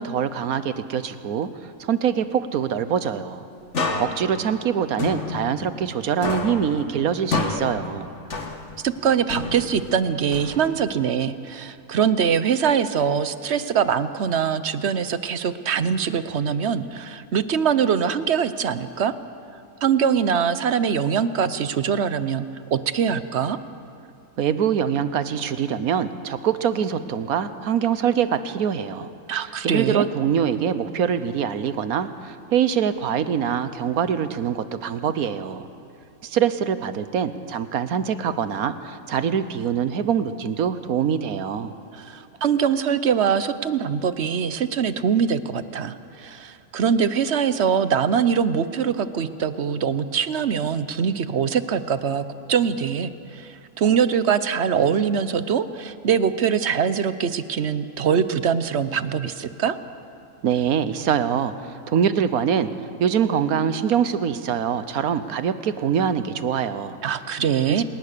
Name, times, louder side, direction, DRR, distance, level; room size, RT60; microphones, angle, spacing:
voice 1, 0.0-1.5 1.8-3.4 4.0-8.1 24.4-29.1 29.6-35.7 36.2-41.7 60.4-62.7 63.0-67.0 67.7-67.8, right 8 dB, 85° right, 12 dB, 1.4 m, -24 dB
sound 1, 3.7-6.0 6.2-8.9 9.3-11.0, left 3 dB, 55° left, 2.0 m, -29 dB
voice 2, 8.8-19.1 19.8-23.6 29.3-30.1 41.9-59.8 67.0-67.8, right 7 dB, 55° right, 13 dB, 1.0 m, -23 dB
27.0 x 19.5 x 6.8 m, 2.7 s
omnidirectional pair, 1.5 m